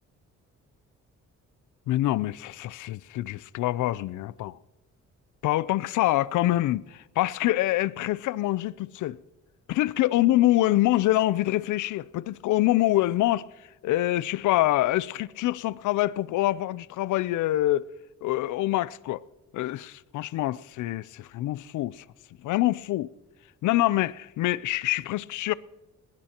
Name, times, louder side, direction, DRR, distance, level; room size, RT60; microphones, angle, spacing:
voice 1, 1.9-4.6 5.4-9.2 9.7-13.5 13.8-17.8 18.2-19.2 19.5-22.0 22.4-23.1 23.6-25.6, left 15 dB, 80° left, 0.5 m, -25 dB
20.0 x 19.0 x 2.9 m
cardioid pair, 90°, 30 cm